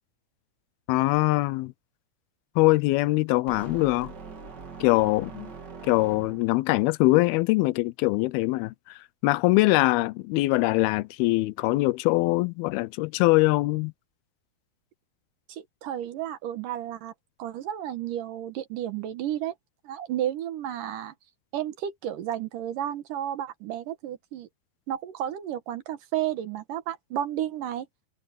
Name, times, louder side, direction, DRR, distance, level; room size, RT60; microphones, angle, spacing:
voice 1, 0.9-1.7 2.6-4.1 4.8-5.5 5.8-13.9, left 20 dB, 85° left, 2.5 m, -23 dB
sound 1, 3.5-6.7, right 4 dB, 35° right, 2.3 m, -43 dB
voice 2, 15.5-17.1 17.4-19.5 19.8-21.1 21.5-24.5 24.9-27.9, right 11 dB, 70° right, 2.5 m, -32 dB
omnidirectional pair, 4.4 m